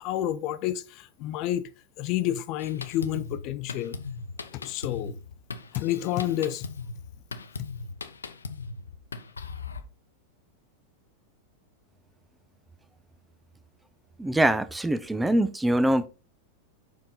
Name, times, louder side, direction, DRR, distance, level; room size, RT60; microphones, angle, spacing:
voice 1, 0.0-1.7 2.0-4.0 4.5-5.2 5.7-6.7, left 12 dB, 40° left, 0.5 m, -29 dB
Drum kit, 2.6-9.8, left 4 dB, 75° left, 0.8 m, -39 dB
voice 2, 14.2-16.1, right 1 dB, 5° right, 0.6 m, -23 dB
7.5 x 5.2 x 4.1 m
figure-of-eight pair, 90°, 0 cm